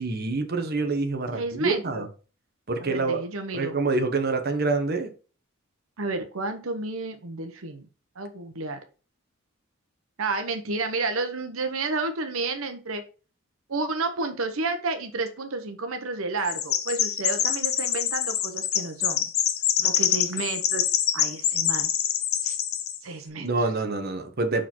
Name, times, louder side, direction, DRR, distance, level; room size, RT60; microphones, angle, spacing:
voice 1, 0.0-2.1 2.7-3.2 3.5-5.1 23.4-24.7, right 3 dB, 50° right, 5 dB, 1.1 m, -26 dB
voice 2, 1.3-2.1 2.8-3.8 6.0-7.9 8.2-8.8 10.2-13.0 13.7-19.3 19.8-20.9 21.1-21.9 22.4-22.6 23.0-23.7, right 3 dB, 80° right, 7 dB, 1.0 m, -31 dB
Chirp tweet, 16.4-23.0, left 10 dB, 85° left, 0.9 m, -25 dB
6.1 x 4.9 x 4.4 m, 0.35 s
head